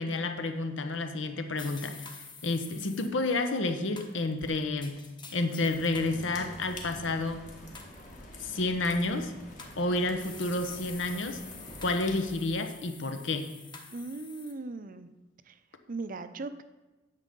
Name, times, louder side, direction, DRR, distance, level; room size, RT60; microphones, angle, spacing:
voice 1, 0.0-2.0 2.4-5.0 5.3-7.5 8.4-9.3 9.8-11.4 11.8-13.5, left 2 dB, 80° left, 7 dB, 1.0 m, -30 dB
sound 1, 1.6-3.1 4.0-6.1 6.6-7.1 7.7-8.2 9.1-9.8 10.2-14.5, left 4 dB, 25° left, 1.2 m, -48 dB
sound 2, 5.7-12.3, left 1 dB, 40° left, 1.8 m, -46 dB
voice 2, 13.9-15.1 15.5-15.6 15.9-16.6, right 3 dB, 45° right, 11 dB, 0.6 m, -38 dB
9.8 x 7.5 x 5.3 m, 1.1 s
head